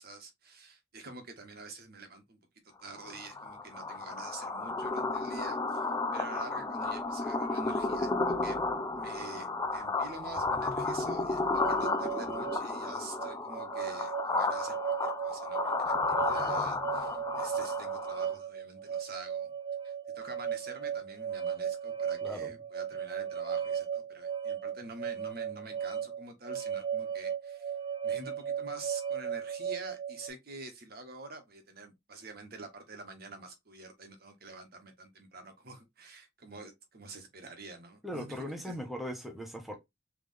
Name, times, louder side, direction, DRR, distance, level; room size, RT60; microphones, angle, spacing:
voice 1, 0.0-2.4 2.6-8.6 8.9-9.5 9.7-19.5 19.8-27.7 28.0-38.8, right 3 dB, 50° right, 1.2 m, -47 dB
sound 1, 3.0-18.3, left 3 dB, 20° left, 0.5 m, -33 dB
sound 2, 11.5-30.3, right 8 dB, 25° right, 1.0 m, -36 dB
voice 2, 22.2-22.6 38.0-39.8, equal, ahead, 0.8 m, -39 dB
3.7 x 3.3 x 3.4 m
head